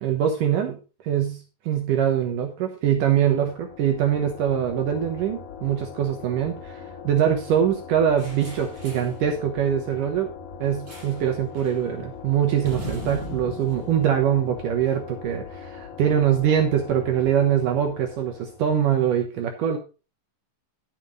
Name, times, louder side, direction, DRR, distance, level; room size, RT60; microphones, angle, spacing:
voice 1, 0.0-0.8 1.0-1.4 1.7-10.3 10.6-19.8, right 9 dB, 70° right, 4 dB, 2.6 m, -23 dB
sound 1, 3.0-18.9, left 6 dB, 70° left, 3.1 m, -41 dB
sound 2, 8.2-9.2 10.9-11.3 11.5-11.8 12.6-15.0, equal, 35° right, 6.9 m, -38 dB
11.5 x 7.5 x 3.9 m, 0.33 s
omnidirectional pair, 4.0 m